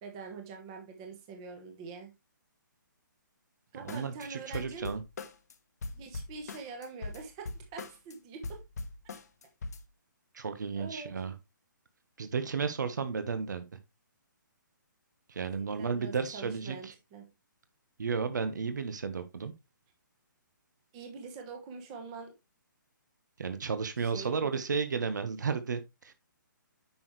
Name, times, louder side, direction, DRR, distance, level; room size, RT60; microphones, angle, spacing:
voice 1, 0.0-2.1 3.7-4.9 5.9-8.6 10.8-11.1 15.5-17.3 20.9-22.3 24.1-24.5, right 4 dB, 15° right, 1.2 m, -44 dB
voice 2, 3.8-5.0 10.3-11.3 12.2-13.6 15.3-16.9 18.0-19.5 23.4-26.1, right 5 dB, 60° right, 1.4 m, -33 dB
sound 1, 3.9-4.3 4.5-5.5 5.8-8.1 8.4-9.8, left 3 dB, 50° left, 1.2 m, -40 dB
8.7 x 6.1 x 3.2 m
hypercardioid pair, 175°, 11 cm